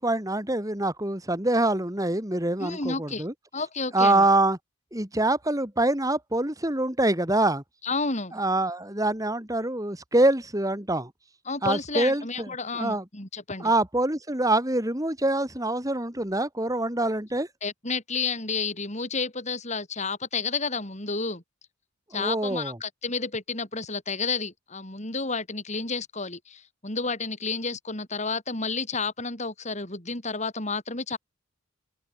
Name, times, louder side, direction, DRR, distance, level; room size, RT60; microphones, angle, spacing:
voice 1, 0.0-3.3 3.9-4.6 4.9-7.6 8.3-11.1 11.6-13.0 13.6-17.5 22.1-22.8, right 2 dB, 15° right, 3.0 m, -25 dB
voice 2, 2.6-3.3 3.5-4.2 7.8-8.4 11.4-13.7 17.6-21.4 22.1-31.2, left 4 dB, 35° left, 4.8 m, -31 dB
head